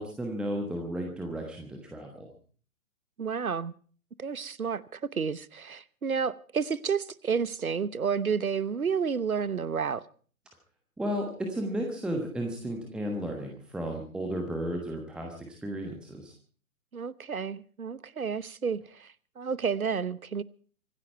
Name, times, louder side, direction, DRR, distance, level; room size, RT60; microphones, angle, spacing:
voice 1, 0.0-2.3 11.0-16.3, equal, ahead, 1.2 m, -34 dB
voice 2, 3.2-3.7 4.2-10.0 16.9-20.4, right 6 dB, 75° right, 1.0 m, -31 dB
25.0 x 10.5 x 4.5 m
figure-of-eight pair, 130°, 43 cm